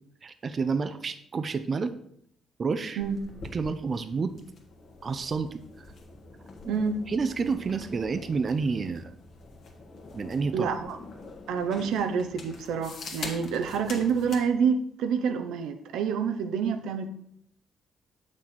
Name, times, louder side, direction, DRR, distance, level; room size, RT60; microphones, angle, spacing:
voice 1, 0.2-1.9 2.6-3.0 3.5-4.3 5.0-5.6 6.6-6.8 7.1-9.1 10.1-10.7, right 4 dB, 40° right, 10 dB, 0.5 m, -29 dB
sound 1, 3.0-14.5, left 3 dB, 65° left, 1.5 m, -45 dB
voice 2, 6.7-7.0 10.5-11.0 11.5-17.1, right 6 dB, 85° right, 8 dB, 0.7 m, -27 dB
7.6 x 6.1 x 4.3 m, 0.70 s
cardioid pair, 90°, 0 cm